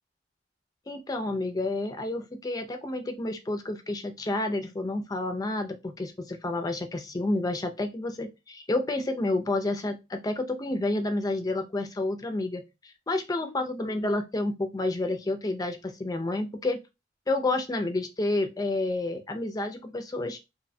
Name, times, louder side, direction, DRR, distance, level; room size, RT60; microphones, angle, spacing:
voice 1, 0.9-16.8 17.3-20.4, left 2 dB, 20° left, 6 dB, 0.4 m, -30 dB
2.7 x 2.1 x 2.6 m, 0.24 s
head